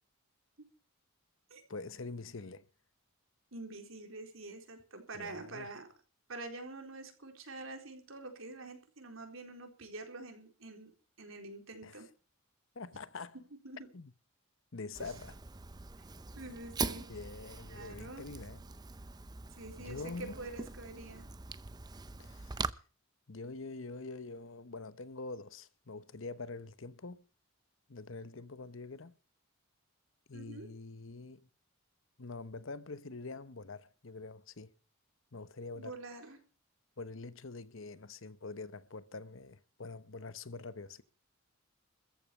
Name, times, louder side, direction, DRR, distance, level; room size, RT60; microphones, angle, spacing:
voice 1, 1.7-2.7 5.1-5.7 11.8-12.0 12.7-13.4 13.9-14.1 14.7-15.3 17.1-18.6 19.8-20.3 22.2-22.7 23.3-27.2 27.9-29.1 30.3-31.5 32.2-34.7 35.3-36.0 37.0-41.0, left 3 dB, 65° left, 1.0 m, -45 dB
voice 2, 3.5-5.9 6.3-10.9 11.2-12.1 13.6-13.9 16.4-17.1 17.7-18.3 19.6-21.3 30.3-30.7 35.7-36.4, right 2 dB, 70° right, 4.1 m, -46 dB
Fire, 14.9-22.7, right 4 dB, 20° right, 0.6 m, -42 dB
14.0 x 8.7 x 8.6 m
head